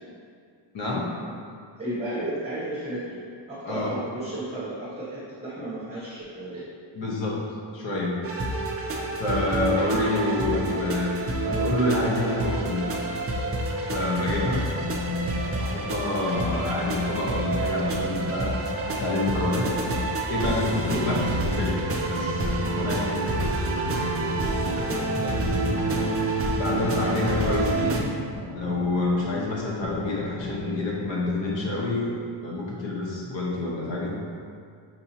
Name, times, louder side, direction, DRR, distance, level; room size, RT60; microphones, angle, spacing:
voice 1, 0.7-1.1 3.6-4.0 6.9-7.4 7.7-8.2 9.2-11.2 11.4-12.8 13.8-14.7 15.6-19.8 20.3-22.4 22.7-23.4 26.5-28.1 28.5-32.1 32.4-34.2, left 2 dB, 65° left, -3 dB, 1.0 m, -27 dB
voice 2, 1.8-3.2 3.5-6.7 9.6-9.9 21.1-21.4 24.6-25.5, right 1 dB, 15° right, -10 dB, 0.9 m, -34 dB
sound 1, 8.2-28.0, right 2 dB, 30° right, 0.4 m, -28 dB
sound 2, 14.6-30.7, left 2 dB, 35° left, 0.5 m, -36 dB
5.9 x 2.7 x 2.8 m, 2.3 s
wide cardioid pair, 155°, 49 cm